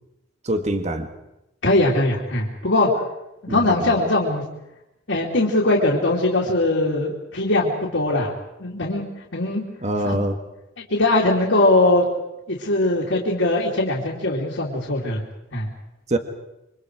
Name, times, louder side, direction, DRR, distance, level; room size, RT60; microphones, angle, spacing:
voice 1, 0.4-1.1 3.5-3.9 9.8-10.4 16.1-16.2, right 1 dB, 35° right, 7 dB, 1.6 m, -24 dB
voice 2, 1.6-2.9 3.4-4.4 5.1-8.3 8.6-9.0 9.3-9.6 10.0-10.1 10.9-12.1 12.5-15.2 15.5-15.7, left 2 dB, 70° left, -5 dB, 3.1 m, -20 dB
27.5 x 24.5 x 4.8 m, 0.91 s
head